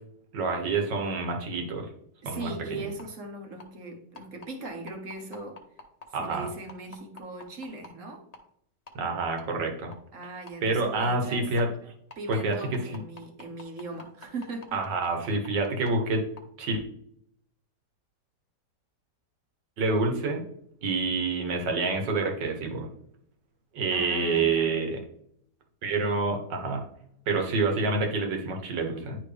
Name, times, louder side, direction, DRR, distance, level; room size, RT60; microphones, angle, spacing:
voice 1, 0.3-1.9 2.3-2.8 6.1-6.5 9.0-9.9 10.6-11.7 12.3-12.6 14.7-16.2 16.6-16.8 19.8-20.4 20.8-22.9 23.7-25.0 25.8-26.8 27.3-29.2, right 3 dB, 85° right, 3 dB, 1.9 m, -27 dB
voice 2, 2.2-5.6 6.1-8.3 10.1-11.5 12.1-14.8 15.1-15.2 23.9-24.7, right 2 dB, 50° right, 4 dB, 1.3 m, -39 dB
sound 1, 2.4-2.5 3.0-3.1 3.6-3.7 4.1-7.9 8.3-8.5 8.9-9.0 9.4-9.5 9.9-10.0 10.5-10.6 11.0-11.1 11.6-11.7 12.1-15.9 16.4-16.5, left 4 dB, 35° left, 0.7 m, -44 dB
10.5 x 3.5 x 3.3 m, 0.69 s
omnidirectional pair, 1.9 m